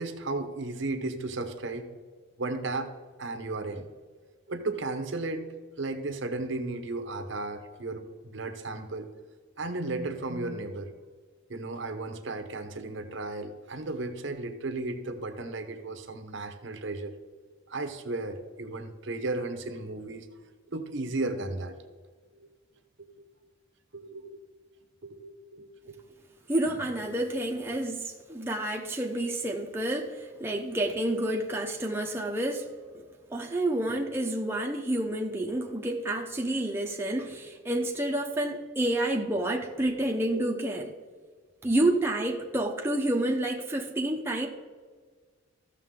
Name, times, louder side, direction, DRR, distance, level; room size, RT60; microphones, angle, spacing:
voice 1, 0.0-1.9 2.4-2.9 3.2-3.9 4.5-5.5 5.8-9.1 9.6-10.9 11.5-17.1 17.7-20.3 20.7-21.7 23.0-23.1 23.9-24.4 25.0-25.7 40.4-40.5, right 2 dB, 60° right, 7 dB, 0.9 m, -34 dB
voice 2, 26.5-32.7 33.3-40.9 41.6-44.5, right 1 dB, 10° right, 0 dB, 0.7 m, -29 dB
14.5 x 6.5 x 3.7 m, 1.5 s
head